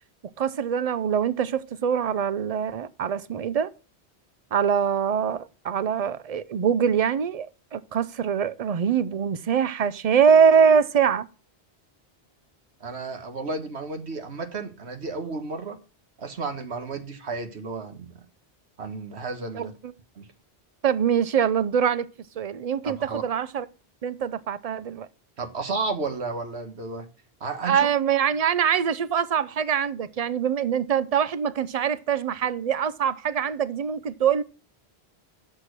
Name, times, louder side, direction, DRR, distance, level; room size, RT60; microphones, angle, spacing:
voice 1, 0.4-3.7 4.5-11.3 19.5-19.9 20.8-22.1 22.4-23.7 24.0-25.1 27.7-34.4, right 7 dB, 45° right, 0.5 m, -23 dB
voice 2, 12.8-15.8 16.2-18.1 18.8-19.7 20.2-20.3 22.8-23.2 25.4-27.1 27.4-27.9, right 3 dB, 80° right, 1.6 m, -32 dB
7.5 x 6.6 x 6.1 m
omnidirectional pair, 1.1 m